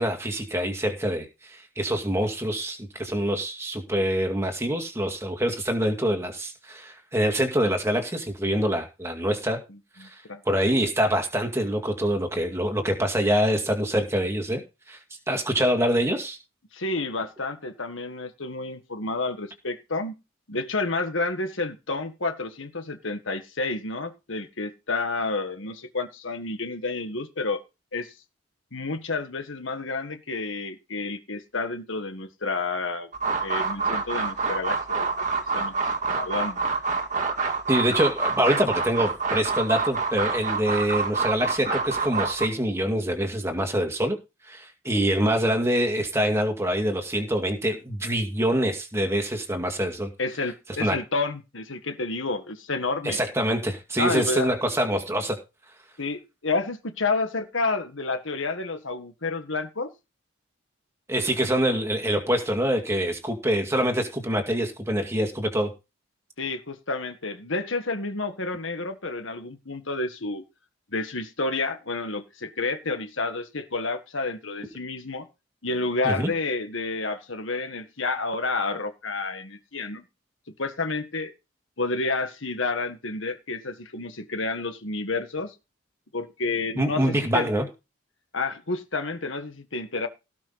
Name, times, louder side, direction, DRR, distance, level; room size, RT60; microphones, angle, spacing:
voice 1, 0.0-9.6 10.0-14.6 14.9-15.0 15.3-16.4 37.7-44.2 44.4-50.1 50.8-51.0 53.0-55.4 61.1-65.7 76.0-76.3 86.8-87.7, equal, 15° right, 5 dB, 2.2 m, -25 dB
voice 2, 10.0-10.4 16.7-20.2 20.5-27.6 27.9-28.1 28.7-33.1 33.4-35.1 35.5-35.7 36.2-36.6 50.2-53.2 54.0-54.6 56.0-59.9 66.4-70.4 70.9-75.3 75.6-80.0 80.6-81.3 81.8-85.5 86.1-87.5 88.3-90.1, left 3 dB, 70° left, 8 dB, 1.7 m, -30 dB
sound 1, 33.1-42.5, right 4 dB, 35° right, 1.9 m, -27 dB
17.5 x 5.9 x 4.0 m, 0.28 s
head